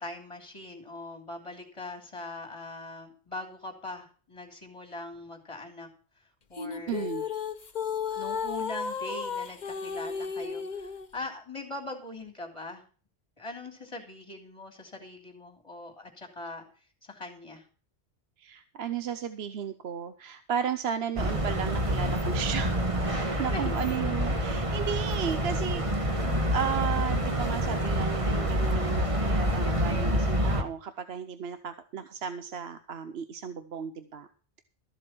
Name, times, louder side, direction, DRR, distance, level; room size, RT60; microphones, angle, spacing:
voice 1, 0.0-5.9 6.5-7.1 8.1-12.8 13.4-16.6 17.0-17.6 23.2-23.7, left 2 dB, 25° left, 4 dB, 3.1 m, -41 dB
sound 1, 6.5-11.1, left 6 dB, 45° left, 1.0 m, -34 dB
voice 2, 6.9-7.3 18.4-22.8 23.1-25.8 26.2-34.3, right 8 dB, 70° right, 10 dB, 1.0 m, -34 dB
sound 2, 21.2-30.6, equal, 30° right, 1.5 m, -27 dB
14.0 x 7.6 x 6.0 m, 0.39 s
omnidirectional pair, 1.1 m